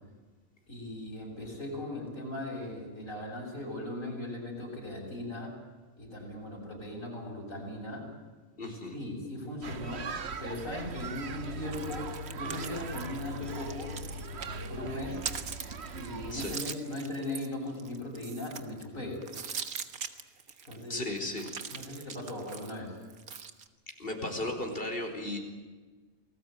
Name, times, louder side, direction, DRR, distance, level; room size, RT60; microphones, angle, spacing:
voice 1, 0.7-5.5 6.0-8.1 8.6-10.0 10.4-13.9 14.7-15.2 15.9-19.3 20.6-21.0 21.7-23.0, left 1 dB, 65° left, -3 dB, 7.7 m, -38 dB
voice 2, 8.6-9.0 16.3-16.5 20.9-21.5 24.0-25.4, left 1 dB, 40° left, 4 dB, 4.9 m, -35 dB
sound 1, 9.6-16.6, right 2 dB, 50° right, 1.4 m, -40 dB
Lemon Squeeze Squishy Fruit, 11.7-14.7 15.0-18.8 19.2-20.8 21.2-23.7, right 6 dB, 85° right, 1.9 m, -42 dB
28.0 x 19.5 x 9.1 m, 1.3 s
omnidirectional pair, 1.5 m